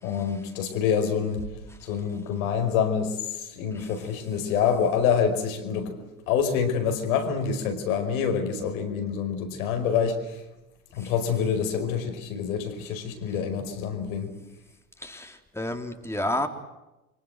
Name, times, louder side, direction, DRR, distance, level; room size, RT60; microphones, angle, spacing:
voice 1, 0.0-6.0 6.3-10.4 10.9-14.3, left 7 dB, 70° left, 6 dB, 5.2 m, -26 dB
voice 2, 15.0-16.5, left 1 dB, 5° left, 4 dB, 3.6 m, -31 dB
29.5 x 24.5 x 8.0 m, 0.98 s
hypercardioid pair, 60°, 43 cm